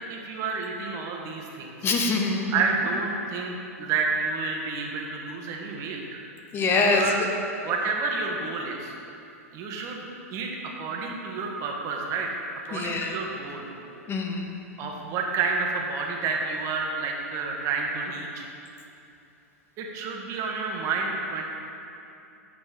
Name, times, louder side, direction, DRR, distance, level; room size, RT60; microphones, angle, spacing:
voice 1, 0.0-1.9 2.5-6.2 6.9-7.2 7.6-9.0 9.5-10.0 10.3-10.5 10.8-12.3 12.7-13.6 14.8-18.4 19.8-21.4, right 4 dB, 40° right, 0 dB, 1.3 m, -30 dB
voice 2, 1.8-2.5 6.5-7.2 12.7-13.2 14.1-14.5, left 3 dB, 30° left, 2 dB, 0.9 m, -24 dB
8.8 x 5.8 x 5.0 m, 2.8 s
hypercardioid pair, 100°, 8 cm